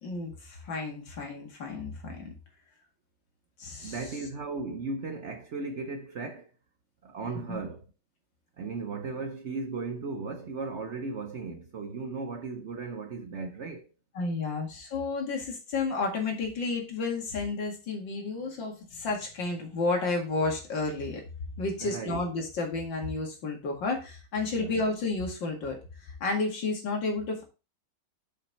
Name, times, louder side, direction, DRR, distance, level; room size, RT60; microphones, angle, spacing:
voice 1, 0.0-2.3 3.6-4.0 7.5-7.6 14.1-21.2 21.6-27.4, left 3 dB, 90° left, 2.7 m, -31 dB
voice 2, 3.8-6.5 7.0-7.8 8.6-13.9 21.8-22.2 24.5-24.7, right 4 dB, 60° right, 0.7 m, -36 dB
6.4 x 5.9 x 4.1 m
omnidirectional pair, 1.9 m